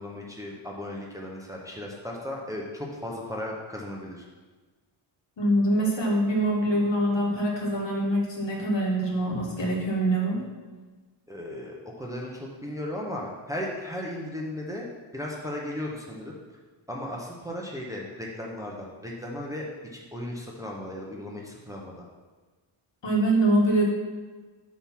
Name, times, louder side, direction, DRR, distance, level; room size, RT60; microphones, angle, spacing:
voice 1, 0.0-4.2 11.3-16.3 16.9-19.7 19.9-22.1, left 1 dB, 5° right, -2 dB, 0.8 m, -36 dB
voice 2, 5.4-10.4 23.0-23.8, right 1 dB, 60° left, -2 dB, 1.8 m, -24 dB
8.8 x 3.6 x 5.8 m, 1.3 s
wide cardioid pair, 140°, 50 cm